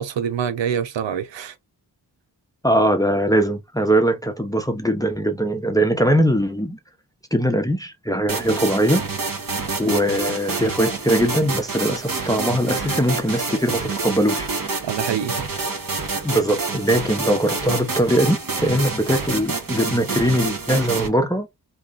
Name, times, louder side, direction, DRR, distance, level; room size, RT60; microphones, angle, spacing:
voice 1, 0.0-1.5 14.8-15.4, right 8 dB, 90° right, 0.6 m, -25 dB
voice 2, 2.6-6.8 7.3-9.0 9.8-14.5 16.2-21.5, equal, 10° left, 0.7 m, -21 dB
sound 1, 8.3-21.1, right 4 dB, 50° right, 1.1 m, -27 dB
3.0 x 2.3 x 3.8 m
cardioid pair, 55°, 43 cm